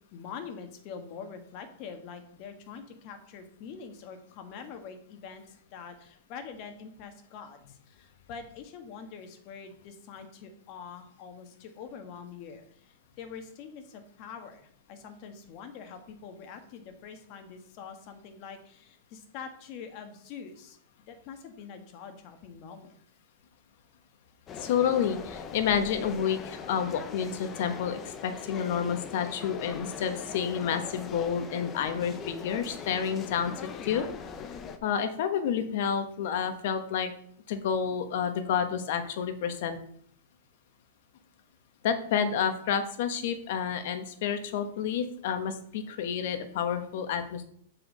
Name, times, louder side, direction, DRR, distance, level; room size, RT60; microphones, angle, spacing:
voice 1, 0.1-5.4 5.7-20.8 21.1-22.9, left 6 dB, 45° left, 6 dB, 1.7 m, -45 dB
sound 1, 24.5-34.8, left 6 dB, 25° left, 0.9 m, -41 dB
voice 2, 24.6-34.1 34.8-37.1 37.5-39.8 41.8-47.4, left 7 dB, 60° left, 8 dB, 1.3 m, -29 dB
7.9 x 4.9 x 6.2 m, 0.63 s
hypercardioid pair, 140°, 0 cm